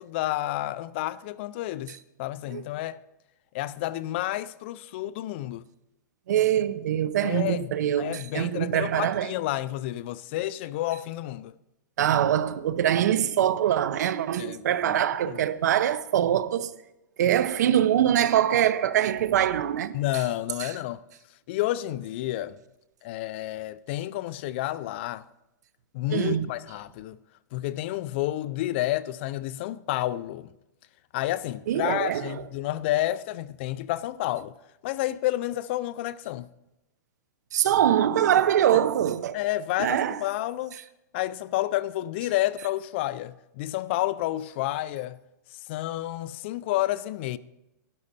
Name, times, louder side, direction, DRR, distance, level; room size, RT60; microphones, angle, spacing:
voice 1, 0.0-3.0 3.5-5.7 7.2-11.5 14.4-15.4 19.9-21.0 21.5-22.6 23.0-25.3 25.9-27.2 27.5-30.5 31.1-34.5 34.8-36.5 38.7-38.8 39.3-40.8 41.1-45.2 45.7-47.4, left 15 dB, 35° left, 0.4 m, -30 dB
voice 2, 6.3-9.3 12.0-16.7 17.2-20.0 20.6-20.7 26.1-26.5 31.7-32.3 37.5-39.4 39.8-40.2, right 10 dB, 65° right, 0.8 m, -23 dB
12.0 x 11.5 x 4.2 m
hypercardioid pair, 160°, 10 cm